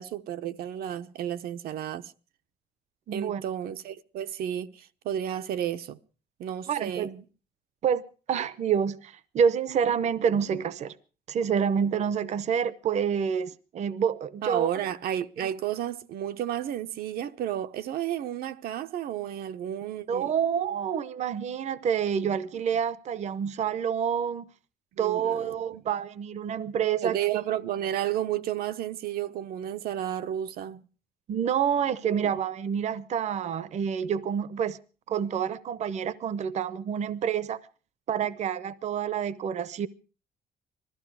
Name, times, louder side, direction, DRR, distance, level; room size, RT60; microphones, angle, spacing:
voice 1, 0.0-2.1 3.1-6.0 6.4-7.2 14.4-20.3 24.9-25.8 27.0-30.9 32.2-32.3, right 11 dB, 80° right, 0.9 m, -32 dB
voice 2, 3.1-3.4 6.7-7.1 7.8-8.0 8.3-10.9 11.3-14.7 20.1-24.5 25.0-27.4 31.3-34.8 35.1-37.6 38.1-39.9, right 7 dB, 45° right, 0.7 m, -28 dB
20.5 x 14.0 x 4.7 m
cardioid pair, 150°, 16 cm